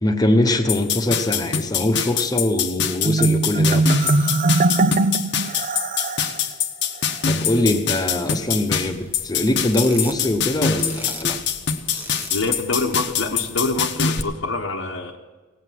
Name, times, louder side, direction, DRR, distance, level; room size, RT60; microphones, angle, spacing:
voice 1, 0.0-4.1 7.2-11.4, left 1 dB, 20° left, 4 dB, 1.1 m, -22 dB
sound 1, 0.7-14.2, left 7 dB, 60° left, 0.9 m, -24 dB
Marimba xylophone, 3.0-6.4, right 3 dB, 40° right, 0.5 m, -20 dB
sound 2, 8.4-14.2, right 1 dB, 10° right, 1.0 m, -39 dB
voice 2, 12.3-15.2, left 3 dB, 85° left, -3 dB, 1.2 m, -25 dB
18.0 x 8.2 x 7.5 m, 1.3 s
head